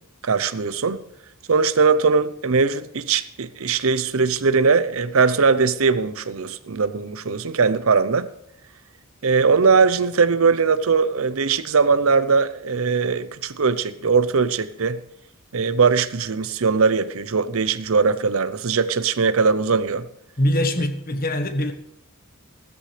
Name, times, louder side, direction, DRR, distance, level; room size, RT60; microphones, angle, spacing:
voice 1, 0.2-1.0 1.5-8.3 9.2-15.0 15.5-20.1, right 5 dB, 70° right, 0.7 m, -20 dB
voice 2, 20.4-21.7, left 1 dB, 40° left, 1.2 m, -22 dB
16.5 x 13.5 x 3.3 m
head